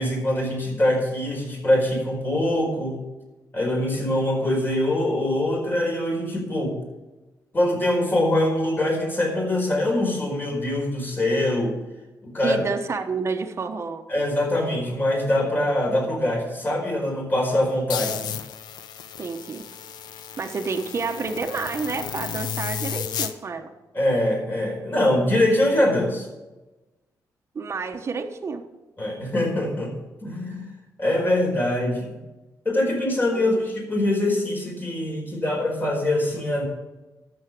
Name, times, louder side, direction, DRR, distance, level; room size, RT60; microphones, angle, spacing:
voice 1, 0.0-3.0 3.5-6.8 7.5-11.7 12.2-12.6 14.1-18.4 23.9-26.3 29.0-30.7 31.0-32.2 32.6-36.7, left 1 dB, 30° left, 0 dB, 4.7 m, -23 dB
voice 2, 12.4-14.0 19.2-19.6 20.4-23.7 27.5-28.6 33.3-33.6, right 4 dB, 40° right, 4 dB, 1.2 m, -29 dB
sound 1, 17.9-23.3, left 8 dB, 85° left, 0.8 m, -33 dB
12.0 x 7.4 x 8.3 m, 1.1 s
cardioid pair, 95°, 7 cm